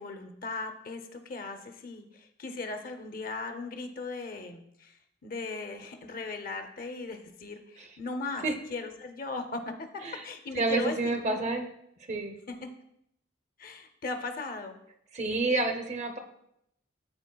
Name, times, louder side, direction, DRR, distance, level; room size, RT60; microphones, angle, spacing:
voice 1, 0.0-11.5 12.5-12.7 13.6-14.8, left 3 dB, 45° left, 7 dB, 0.6 m, -38 dB
voice 2, 10.5-11.6 12.1-12.3 15.1-16.2, right 2 dB, 35° right, 5 dB, 0.7 m, -29 dB
12.5 x 4.4 x 2.2 m, 0.76 s
head